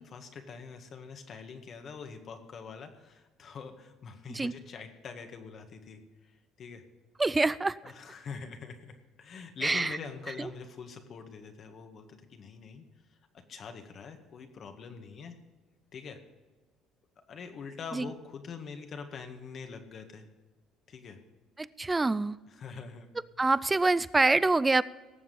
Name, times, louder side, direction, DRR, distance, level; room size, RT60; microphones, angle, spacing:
voice 1, 0.0-6.8 7.8-12.8 13.1-13.2 13.5-15.4 15.9-16.2 17.3-20.3 20.9-21.2 22.5-23.1, left 5 dB, 50° left, 5 dB, 1.9 m, -44 dB
voice 2, 7.2-7.8 9.6-10.0 10.4-10.5 17.9-18.1 21.6-22.4 23.4-24.8, right 3 dB, 20° right, 19 dB, 0.5 m, -26 dB
18.0 x 7.3 x 5.5 m, 1.2 s
supercardioid pair, 75°, 0 cm